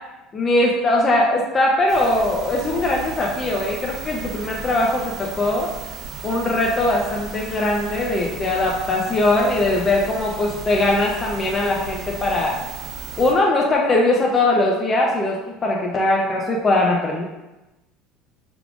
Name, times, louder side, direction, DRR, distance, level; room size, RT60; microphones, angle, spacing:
voice 1, 0.3-5.7 6.2-12.6 13.2-15.4 15.6-17.2, left 2 dB, 25° left, -2 dB, 0.5 m, -20 dB
sound 1, 1.9-13.3, right 5 dB, 45° right, 0.9 m, -35 dB
4.7 x 3.5 x 2.5 m, 1.0 s
supercardioid pair, 120°, 0 cm